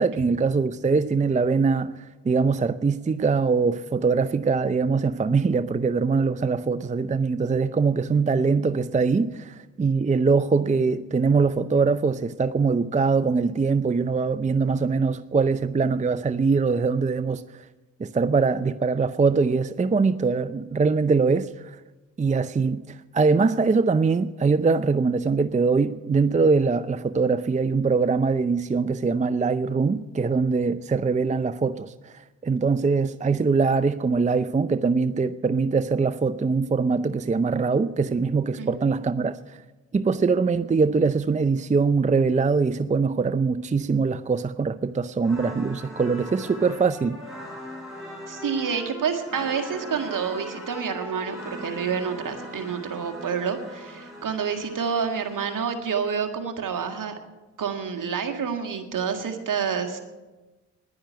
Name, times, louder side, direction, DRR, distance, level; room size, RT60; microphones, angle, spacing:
voice 1, 0.0-17.4 18.0-21.8 22.2-39.6 39.9-47.2, right 4 dB, 20° right, 0.5 m, -22 dB
voice 2, 38.6-38.9 48.3-57.1 57.6-60.0, right 6 dB, 65° right, 1.9 m, -28 dB
sound 1, 45.2-55.6, equal, ahead, 5.8 m, -40 dB
10.5 x 10.0 x 9.4 m
supercardioid pair, 40°, 35 cm